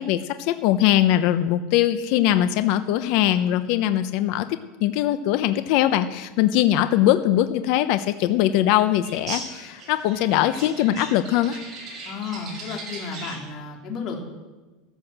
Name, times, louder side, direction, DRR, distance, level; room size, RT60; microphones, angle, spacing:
voice 1, 0.0-11.6, left 12 dB, 60° left, 10 dB, 0.9 m, -21 dB
sound 1, 9.0-13.5, right 3 dB, 30° right, 6.2 m, -38 dB
voice 2, 12.1-14.2, left 5 dB, 40° left, 1 dB, 3.4 m, -33 dB
14.5 x 13.0 x 7.5 m, 1.2 s
supercardioid pair, 150°, 0 cm